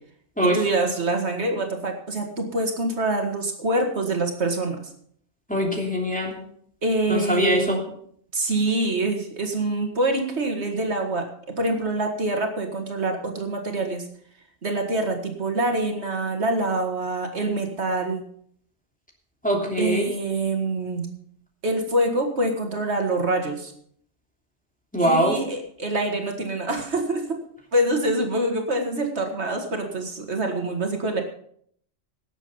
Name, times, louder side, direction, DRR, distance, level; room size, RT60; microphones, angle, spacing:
voice 1, 0.4-4.8 6.8-7.8 8.3-11.3 11.6-14.1 14.6-18.2 19.8-21.1 21.6-23.7 25.0-27.4 27.7-31.2, right 2 dB, 75° right, 3 dB, 2.2 m, -25 dB
voice 2, 5.5-6.4 7.1-7.8 19.4-20.0 24.9-25.4, equal, 5° left, -1 dB, 2.9 m, -22 dB
18.5 x 7.5 x 5.5 m, 0.63 s
omnidirectional pair, 1.1 m